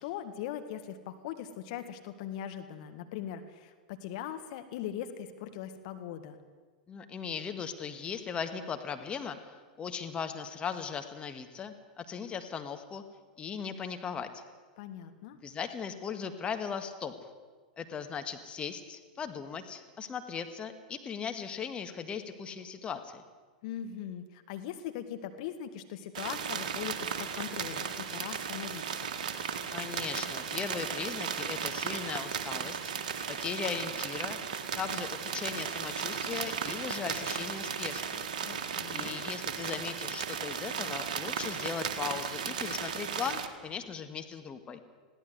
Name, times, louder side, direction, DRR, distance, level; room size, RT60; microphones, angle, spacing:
voice 1, 0.0-6.4 14.8-15.4 23.6-29.1 38.4-39.2, left 10 dB, 55° left, 8 dB, 1.7 m, -40 dB
voice 2, 6.9-13.0 13.4-14.4 15.4-17.1 17.8-23.2 29.7-32.8 33.3-34.4 34.8-38.3 38.9-44.8, left 6 dB, 25° left, 7 dB, 1.8 m, -38 dB
sound 1, 26.1-43.5, right 7 dB, 60° right, 2.0 m, -36 dB
21.0 x 16.5 x 8.1 m, 1.4 s
figure-of-eight pair, 95°, 5 cm